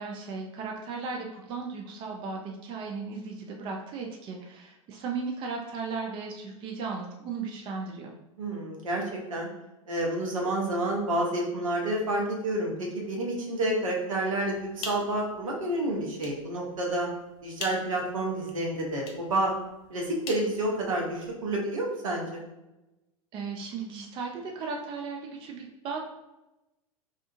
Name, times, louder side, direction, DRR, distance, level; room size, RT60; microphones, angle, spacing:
voice 1, 0.0-8.1 23.3-26.1, right 4 dB, 30° right, 1 dB, 0.4 m, -36 dB
voice 2, 8.4-9.0 9.3-9.5 9.9-17.1 17.4-19.5 19.9-22.4, right 1 dB, 75° right, -1 dB, 0.7 m, -29 dB
sound 1, 14.5-21.3, left 3 dB, 35° left, 0.5 m, -45 dB
2.4 x 2.4 x 2.6 m, 0.98 s
figure-of-eight pair, 85°, 18 cm